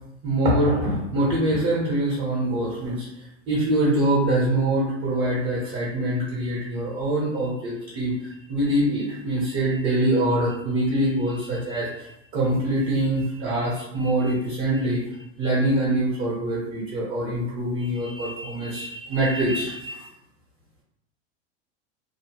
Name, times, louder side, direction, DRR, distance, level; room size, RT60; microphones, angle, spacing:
voice 1, 0.2-3.1 3.5-15.0 15.4-20.1, right 1 dB, 35° right, -5 dB, 1.1 m, -24 dB
2.8 x 2.1 x 3.0 m, 0.83 s
supercardioid pair, 125°, 37 cm